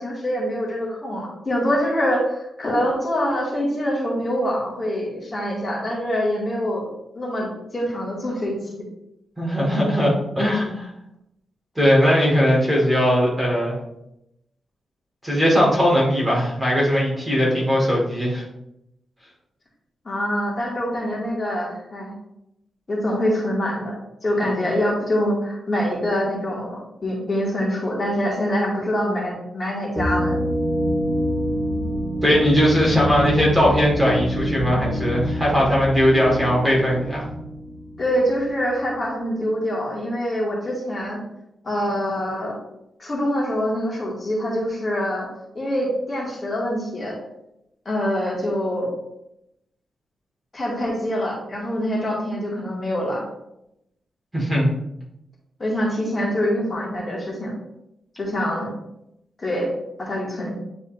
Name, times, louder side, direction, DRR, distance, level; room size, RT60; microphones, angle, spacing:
voice 1, 0.0-6.9 7.2-7.5 7.7-8.8 20.0-22.1 22.9-24.0 24.2-30.4 38.0-41.2 41.6-42.6 43.0-45.3 45.5-47.2 47.9-48.9 50.5-53.2 55.6-57.5 58.2-58.7 59.4-59.7 60.0-60.5, equal, 30° left, -4 dB, 2.2 m, -25 dB
voice 2, 9.4-10.9 11.8-13.7 15.2-18.4 32.2-37.2 54.3-54.7, equal, 10° right, -5 dB, 2.0 m, -19 dB
sound 1, 30.0-38.6, equal, 45° right, 1.5 m, -26 dB
9.6 x 4.1 x 2.7 m, 0.84 s
wide cardioid pair, 115°, 0 cm